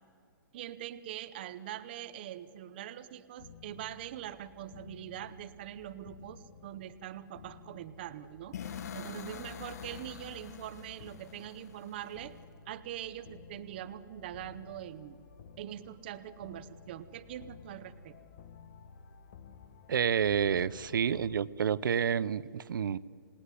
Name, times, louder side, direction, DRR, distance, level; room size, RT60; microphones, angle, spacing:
voice 1, 0.5-8.6 8.9-12.4 12.7-15.2 15.6-18.2, right 12 dB, 30° right, 13 dB, 0.8 m, -43 dB
sound 1, 3.4-21.4, left 6 dB, 35° left, 1.1 m, -54 dB
sound 2, 8.5-12.4, left 8 dB, 50° left, 1.5 m, -45 dB
voice 2, 19.9-23.0, right 8 dB, 70° right, 19 dB, 0.7 m, -29 dB
27.0 x 18.5 x 9.9 m, 2.3 s
hypercardioid pair, 175°, 11 cm